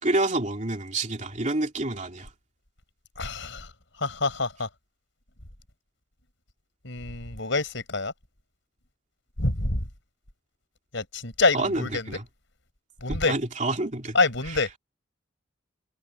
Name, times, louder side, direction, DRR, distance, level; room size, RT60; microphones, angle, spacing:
voice 1, 0.0-2.3 11.5-12.2 13.1-14.2, right 2 dB, 40° right, 2.8 m, -28 dB
voice 2, 3.2-3.7 4.0-4.7 6.8-8.1 9.4-9.8 10.9-12.2 13.0-13.3 14.1-14.8, left 3 dB, 70° left, 5.6 m, -26 dB
head